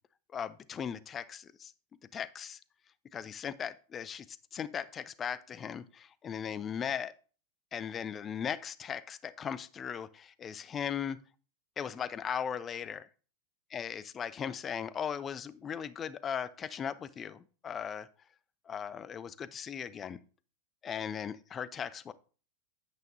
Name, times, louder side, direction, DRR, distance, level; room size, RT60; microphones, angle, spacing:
voice 1, 0.3-1.7 2.1-2.6 3.1-7.1 7.7-11.2 11.8-13.1 13.7-18.1 18.7-20.2 20.8-22.1, left 8 dB, 25° left, 17 dB, 0.4 m, -38 dB
8.9 x 8.1 x 2.7 m, 0.38 s
figure-of-eight pair, 90°, 0 cm